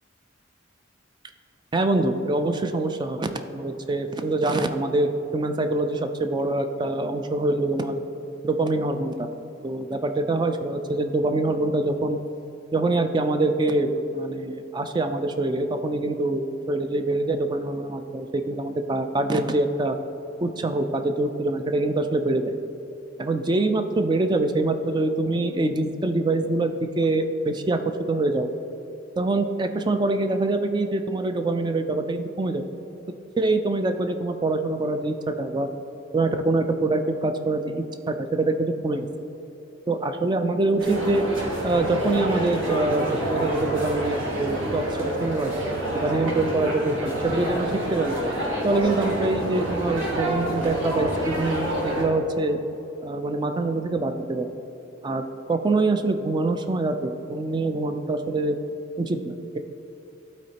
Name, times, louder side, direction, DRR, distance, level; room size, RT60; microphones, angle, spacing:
voice 1, 1.7-8.0 8.4-9.3 9.6-12.2 12.7-20.0 20.4-22.5 23.2-27.8 28.1-28.5 29.2-32.6 33.4-35.7 36.1-39.1 39.9-41.2 41.6-45.5 45.9-48.2 48.6-52.6 53.0-54.5 55.0-58.6 59.0-59.6, right 2 dB, 20° right, 7 dB, 0.3 m, -25 dB
sound 1, 40.8-52.0, right 1 dB, 75° right, 1.4 m, -28 dB
12.5 x 4.2 x 2.8 m, 2.9 s
head